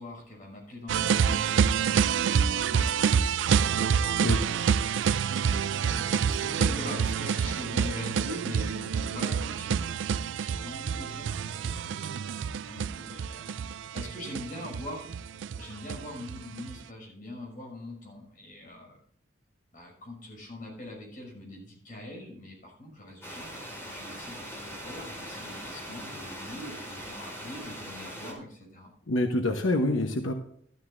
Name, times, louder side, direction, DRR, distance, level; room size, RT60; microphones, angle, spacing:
voice 1, 0.0-3.2 4.1-10.1 10.4-15.1 15.6-19.0 19.7-28.9, left 1 dB, 45° left, -1 dB, 5.9 m, -43 dB
sound 1, 0.9-16.7, right 7 dB, 75° right, 0.4 m, -27 dB
sound 2, 23.2-28.3, equal, 15° left, 3.6 m, -41 dB
voice 2, 29.1-30.3, left 1 dB, 85° left, 4 dB, 1.0 m, -26 dB
13.5 x 13.0 x 2.6 m, 0.66 s
head